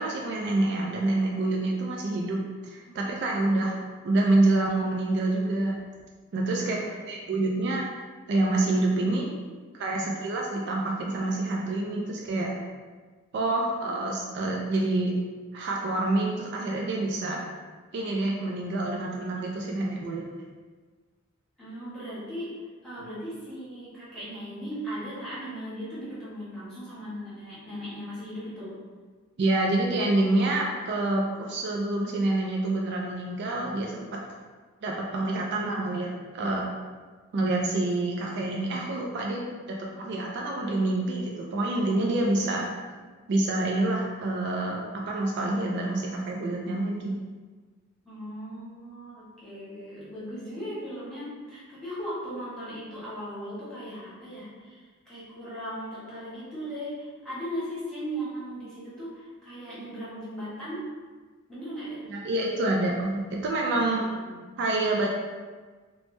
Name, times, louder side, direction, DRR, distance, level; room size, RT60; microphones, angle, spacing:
voice 1, 0.0-3.8 4.0-5.7 6.3-6.8 7.1-7.8 8.3-9.3 9.7-12.5 13.3-15.1 15.5-17.4 17.9-20.2 29.4-34.1 34.8-36.6 37.3-42.6 43.3-47.2 62.1-64.0 64.6-65.1, right 2 dB, 55° right, -1 dB, 0.3 m, -27 dB
voice 2, 3.0-3.6 6.6-7.0 9.9-10.0 21.6-28.7 42.2-42.6 48.0-60.9 61.5-62.0 63.8-64.4, equal, 5° left, -11 dB, 1.2 m, -38 dB
3.2 x 2.0 x 3.1 m, 1.4 s
head